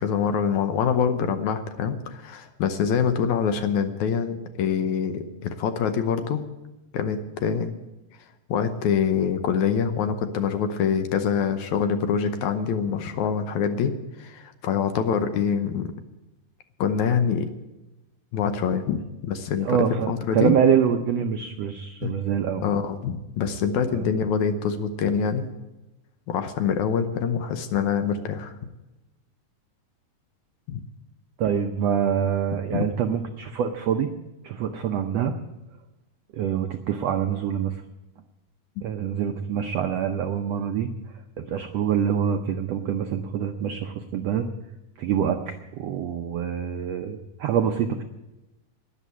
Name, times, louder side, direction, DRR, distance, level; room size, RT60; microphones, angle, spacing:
voice 1, 0.0-6.4 6.9-7.7 8.5-13.9 14.2-15.9 16.8-17.5 18.3-19.8 20.1-20.5 22.0-22.1 22.6-25.5 26.3-28.5 30.7-30.8 32.7-32.8, left 7 dB, 70° left, 8 dB, 2.1 m, -25 dB
voice 2, 19.6-22.6 23.9-24.0 31.4-34.1 34.4-35.3 36.3-37.8 38.8-40.9 41.4-44.5 45.0-48.0, right 8 dB, 80° right, 6 dB, 1.5 m, -25 dB
12.5 x 10.0 x 8.3 m, 1.0 s
omnidirectional pair, 3.8 m